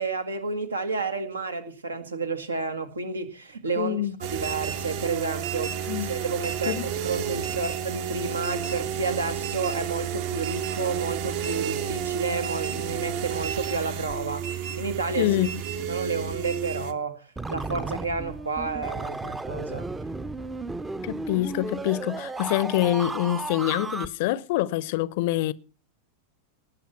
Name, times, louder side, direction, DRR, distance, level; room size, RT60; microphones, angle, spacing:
voice 1, 0.0-4.0 4.3-15.3 15.9-19.9, right 4 dB, 75° right, 1.8 m, -31 dB
voice 2, 3.8-4.1 5.9-6.1 6.7-6.9 15.2-15.5 21.0-25.5, left 15 dB, 50° left, 0.6 m, -25 dB
sound 1, 4.2-16.9, right 8 dB, 45° right, 1.2 m, -31 dB
sound 2, 17.4-24.1, right 3 dB, 10° right, 0.7 m, -34 dB
18.5 x 7.0 x 5.8 m
figure-of-eight pair, 90°, 0 cm